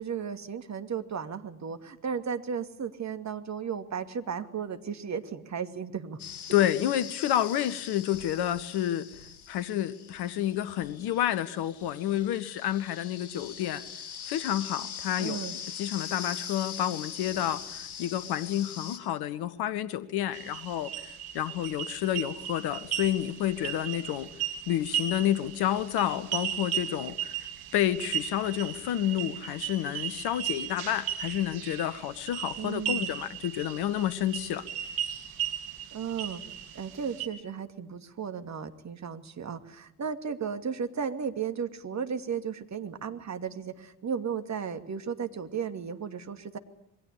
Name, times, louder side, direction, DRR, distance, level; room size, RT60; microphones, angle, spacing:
voice 1, 0.0-6.2 15.2-15.5 32.6-33.1 35.9-36.4 36.7-46.6, right 7 dB, 40° right, 7 dB, 2.6 m, -35 dB
sound 1, 6.2-19.0, left 8 dB, 80° left, 2.8 m, -42 dB
voice 2, 6.5-9.1 9.5-13.8 14.2-15.4 15.8-24.3 24.7-27.4 27.7-34.6, left 12 dB, 60° left, 17 dB, 1.3 m, -29 dB
sound 2, 20.3-37.3, right 10 dB, 60° right, 2.9 m, -36 dB
28.0 x 22.5 x 8.4 m, 0.79 s
figure-of-eight pair, 45°, 42 cm